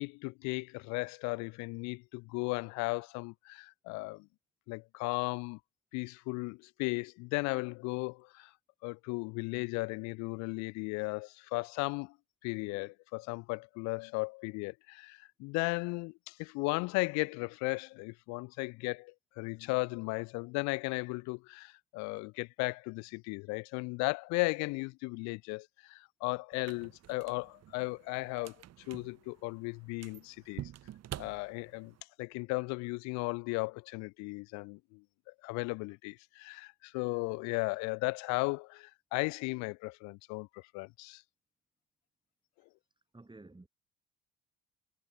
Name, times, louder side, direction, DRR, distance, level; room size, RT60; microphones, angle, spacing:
voice 1, 0.0-4.3 4.7-5.6 5.9-8.5 8.8-12.2 12.4-28.6 28.9-30.7 31.2-41.2, left 27 dB, 55° left, 0.6 m, -36 dB
sound 1, 26.5-32.0, right 12 dB, 50° right, 3.3 m, -48 dB
voice 2, 43.1-43.7, right 2 dB, 15° right, 7.2 m, -52 dB
figure-of-eight pair, 55°, 33 cm